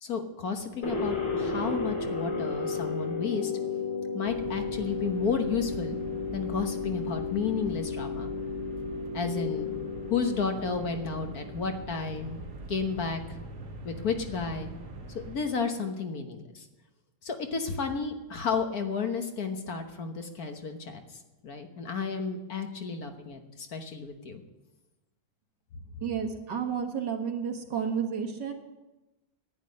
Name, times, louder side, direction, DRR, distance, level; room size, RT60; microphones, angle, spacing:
voice 1, 0.0-3.5 4.1-6.0 6.3-8.3 9.1-9.7 10.1-12.4 12.7-13.2 13.8-14.7 15.2-16.7 17.2-24.4, left 5 dB, 55° left, 5 dB, 1.6 m, -32 dB
sound 1, 0.8-11.7, left 4 dB, 70° left, 5.6 m, -33 dB
sound 2, 4.2-15.4, right 2 dB, 45° right, 1.6 m, -44 dB
voice 2, 26.0-28.5, right 7 dB, 65° right, 3 dB, 2.2 m, -31 dB
10.5 x 9.6 x 9.6 m, 1.0 s
omnidirectional pair, 2.0 m